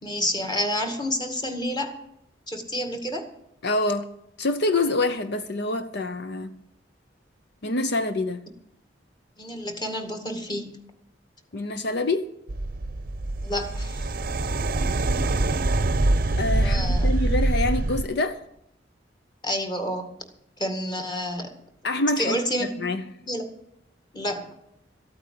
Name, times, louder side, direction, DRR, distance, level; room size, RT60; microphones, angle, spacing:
voice 1, 0.0-1.9 2.5-3.3 9.4-10.7 13.4-14.1 16.6-17.1 19.4-20.1 20.6-21.5 22.2-22.9 23.3-23.4 24.1-24.5, equal, 25° left, 2.0 m, -29 dB
voice 2, 3.6-4.1 4.4-6.5 7.6-8.4 11.5-12.3 16.4-18.4 21.8-23.0, left 2 dB, 60° left, 0.7 m, -26 dB
sound 1, 12.5-18.0, right 2 dB, 50° right, 0.7 m, -24 dB
14.0 x 8.8 x 7.7 m
head